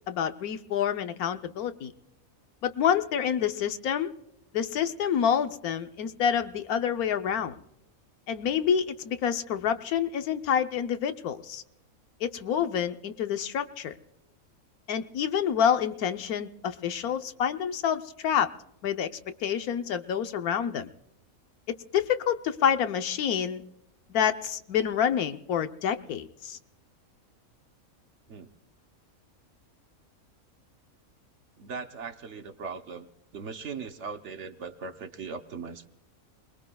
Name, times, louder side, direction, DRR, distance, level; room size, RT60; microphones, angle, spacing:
voice 1, 0.1-1.9 2.6-4.1 4.5-7.6 8.3-11.6 12.2-14.0 14.9-18.5 18.8-19.1 19.4-20.9 21.9-23.6 24.1-26.6, left 8 dB, 85° left, 9 dB, 1.3 m, -27 dB
voice 2, 31.6-33.1 33.3-35.9, right 5 dB, 55° right, 7 dB, 1.2 m, -39 dB
27.5 x 20.5 x 2.3 m, 0.86 s
omnidirectional pair, 1.5 m